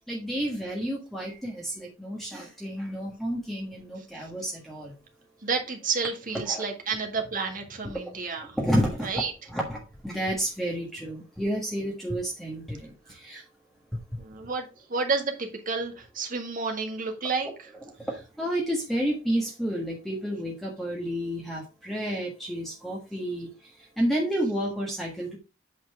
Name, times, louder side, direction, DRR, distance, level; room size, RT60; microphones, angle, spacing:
voice 1, 0.1-4.9 6.5-6.7 7.8-7.9 8.5-9.1 9.5-13.4 18.1-23.5 24.0-25.4, equal, ahead, 1.4 m, -30 dB
voice 2, 5.4-8.6 9.0-9.3 14.2-17.7, right 4 dB, 45° right, 1.8 m, -30 dB
8.4 x 4.3 x 4.7 m
head